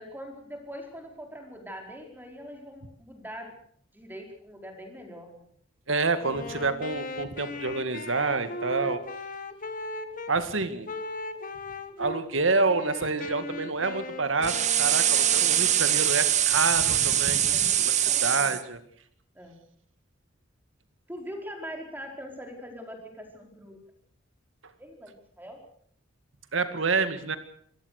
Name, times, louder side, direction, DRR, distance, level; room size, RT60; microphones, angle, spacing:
voice 1, 0.0-3.5 3.9-5.5 10.4-10.5 15.3-15.6 17.5-18.6 19.3-19.6 21.1-23.8 24.8-25.6, equal, 10° right, 3 dB, 4.6 m, -42 dB
voice 2, 5.9-9.0 10.3-10.9 12.0-18.8 26.5-27.4, right 3 dB, 80° right, 10 dB, 2.1 m, -28 dB
Wind instrument woodwind instrument, 6.2-10.4 10.8-12.3 12.7-15.9, left 2 dB, 45° left, 1.7 m, -38 dB
sound 1, 14.4-18.6, right 11 dB, 35° right, 1.0 m, -23 dB
26.0 x 18.0 x 6.6 m, 0.63 s
head